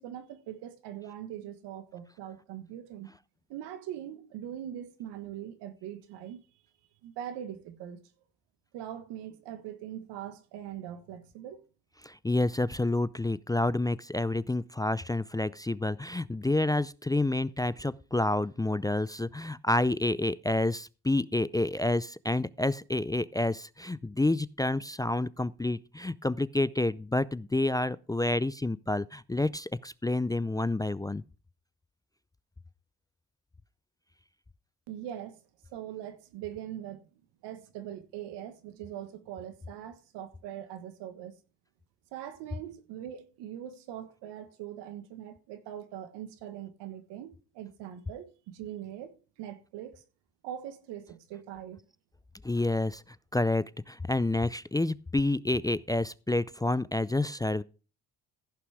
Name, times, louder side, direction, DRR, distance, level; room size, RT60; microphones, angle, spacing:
voice 1, 0.0-3.1 3.5-6.4 7.0-8.0 8.7-11.6 34.9-35.4 35.7-37.0 37.4-41.3 42.1-49.1 49.4-50.0 50.4-51.8, right 11 dB, 85° right, 1.6 m, -42 dB
voice 2, 12.0-31.2 52.4-53.0 53.3-57.6, left 2 dB, 10° left, 0.4 m, -29 dB
15.0 x 5.8 x 4.8 m
supercardioid pair, 65°, 40 cm